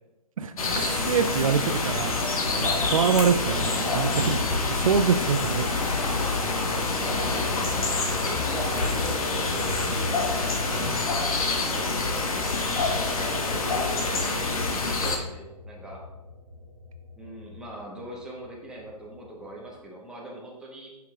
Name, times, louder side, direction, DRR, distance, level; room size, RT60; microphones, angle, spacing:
voice 1, 0.4-4.4 4.6-5.7, right 6 dB, 60° right, 9 dB, 0.4 m, -25 dB
sound 1, 0.6-15.2, left 3 dB, 65° left, 1.2 m, -26 dB
sound 2, 4.0-19.8, left 1 dB, 90° right, 1.4 m, -43 dB
voice 2, 7.0-10.5 11.2-12.5 13.0-16.0 17.2-21.0, right 1 dB, 5° right, -4 dB, 1.1 m, -41 dB
7.1 x 5.9 x 2.4 m, 1.0 s
figure-of-eight pair, 130°, 20 cm